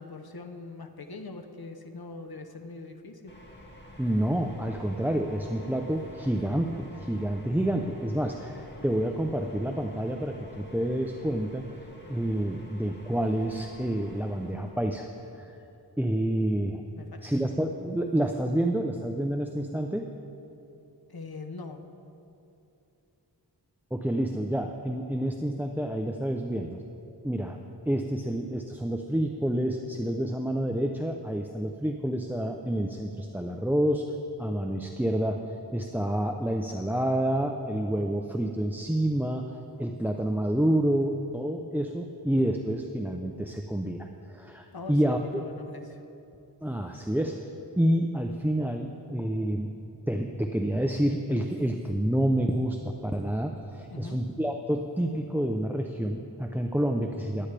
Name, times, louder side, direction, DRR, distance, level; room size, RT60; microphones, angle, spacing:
voice 1, 0.0-3.3 17.0-17.3 21.1-21.8 44.7-46.0 53.9-54.2, left 3 dB, 65° left, 5 dB, 0.9 m, -42 dB
sound 1, 3.3-14.9, equal, 25° left, 2.2 m, -49 dB
voice 2, 4.0-11.7 12.1-15.1 15.3-15.5 16.0-16.8 17.2-20.1 23.9-26.8 27.2-27.6 27.9-34.0 34.4-45.4 46.6-49.7 50.1-57.5, right 1 dB, 5° right, 3 dB, 0.6 m, -28 dB
20.0 x 9.8 x 3.4 m, 2.8 s
wide cardioid pair, 40°, 40 cm